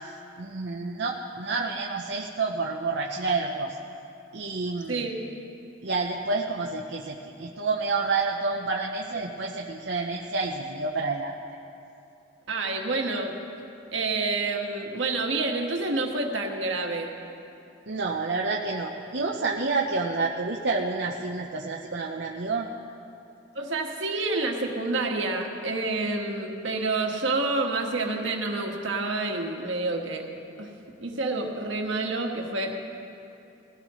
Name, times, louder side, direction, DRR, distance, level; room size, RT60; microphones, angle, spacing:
voice 1, 0.4-3.8 4.3-5.0 5.8-11.3 17.9-22.7, right 3 dB, 60° right, -1 dB, 0.8 m, -29 dB
voice 2, 12.5-13.4 13.9-17.1 23.5-30.2 30.6-30.7 31.0-32.9, right 3 dB, 75° right, 1 dB, 1.6 m, -28 dB
21.0 x 15.5 x 3.1 m, 2.7 s
head